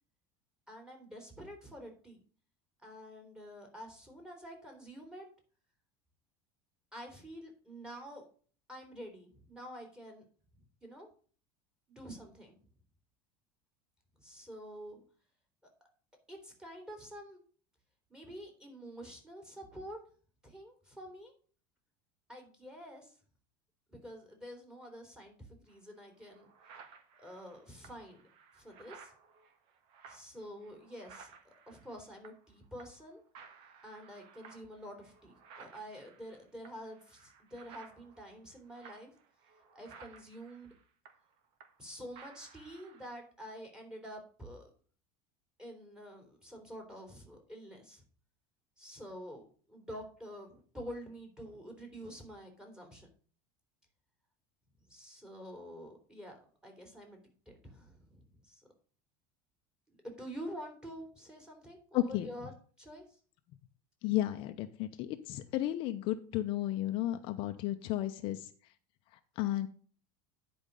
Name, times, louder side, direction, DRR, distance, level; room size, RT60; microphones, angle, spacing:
voice 1, 0.7-2.2 2.8-5.3 6.9-8.3 8.7-10.2 10.5-11.1 11.9-12.6 14.2-15.0 16.3-17.4 18.1-20.0 20.4-21.3 22.3-23.2 23.9-26.5 27.2-28.2 28.5-29.1 30.1-33.2 33.8-39.1 39.7-40.7 41.8-44.7 45.6-48.0 48.8-53.1 54.8-58.7 59.9-63.2, equal, 5° right, 2 dB, 3.3 m, -48 dB
sound 1, 25.7-25.8 26.2-32.5 32.8-33.1 33.3-41.9 42.1-43.2, right 6 dB, 55° right, 1.6 m, -57 dB
voice 2, 61.9-62.3 64.0-68.5 69.4-69.7, left 14 dB, 50° left, 7 dB, 0.8 m, -33 dB
10.0 x 5.2 x 5.2 m, 0.42 s
supercardioid pair, 140°, 11 cm